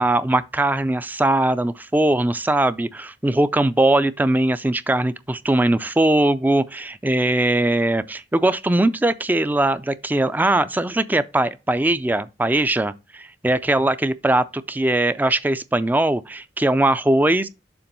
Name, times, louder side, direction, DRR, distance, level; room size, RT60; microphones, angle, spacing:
voice 1, 0.0-17.5, right 1 dB, 10° right, 0.3 m, -20 dB
7.1 x 3.0 x 5.3 m
head